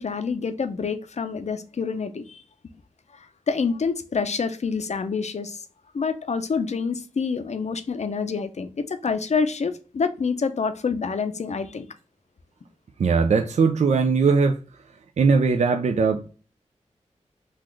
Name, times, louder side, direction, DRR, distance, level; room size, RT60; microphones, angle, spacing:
voice 1, 0.0-2.4 3.1-5.6 5.9-11.8, left 5 dB, 60° left, 0.6 m, -27 dB
voice 2, 13.0-14.6 15.2-16.3, right 5 dB, 65° right, 0.4 m, -20 dB
4.0 x 2.4 x 3.0 m
cardioid pair, 45°, 13 cm